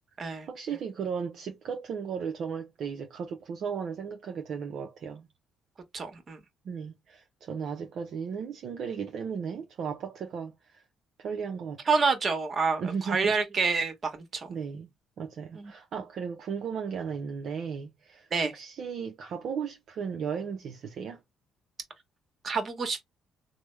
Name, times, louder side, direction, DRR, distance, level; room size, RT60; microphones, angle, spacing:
voice 1, 0.5-5.3 6.6-10.8 11.2-11.8 12.8-13.3 14.5-14.9 15.2-21.2, right 6 dB, 65° right, 0.5 m, -35 dB
voice 2, 5.9-6.4 11.9-14.6 15.5-15.7 18.3-18.5 22.4-23.0, right 4 dB, 40° right, 1.0 m, -28 dB
3.2 x 2.0 x 3.1 m
supercardioid pair, 80°, 0 cm